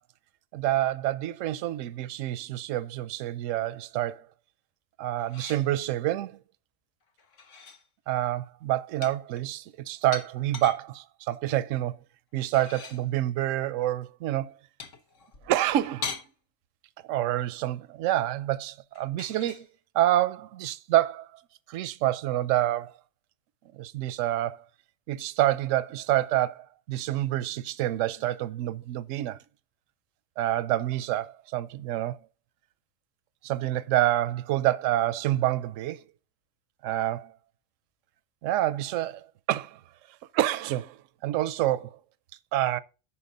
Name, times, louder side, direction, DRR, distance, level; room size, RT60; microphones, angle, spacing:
voice 1, 0.5-4.3 5.0-6.4 8.1-11.9 12.3-14.5 15.5-16.2 17.0-19.7 19.9-21.3 21.7-22.9 23.7-24.6 25.1-29.4 30.4-32.2 33.4-36.0 36.8-37.3 38.4-39.8 40.3-42.0 42.5-42.8, right 13 dB, 80° right, 0.9 m, -27 dB
sound 1, 5.2-5.7 7.2-7.8 9.0-10.8 12.3-13.0 14.8-16.3 18.9-19.6, left 6 dB, 70° left, 1.5 m, -40 dB
9.8 x 5.7 x 3.8 m
omnidirectional pair, 1.3 m